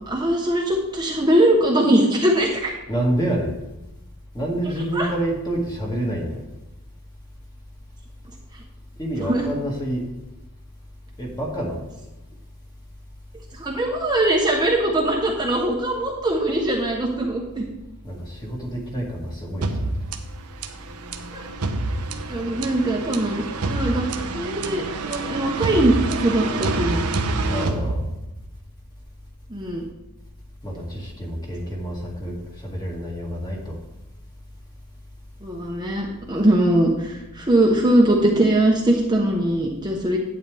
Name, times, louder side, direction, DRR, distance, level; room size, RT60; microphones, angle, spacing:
voice 1, 0.1-2.7 5.0-5.1 9.2-9.5 13.5-17.6 21.3-21.4 22.3-25.9 26.2-27.0 29.5-29.9 35.4-40.2, right 1 dB, 20° right, -1 dB, 1.1 m, -21 dB
voice 2, 2.9-3.5 4.3-6.4 9.0-10.0 11.2-11.8 18.0-19.9 27.5-28.0 30.6-33.8, right 1 dB, 20° left, -2 dB, 2.3 m, -28 dB
sound 1, 19.6-28.6, right 2 dB, 80° right, 0.9 m, -27 dB
11.5 x 8.9 x 3.5 m, 0.97 s
head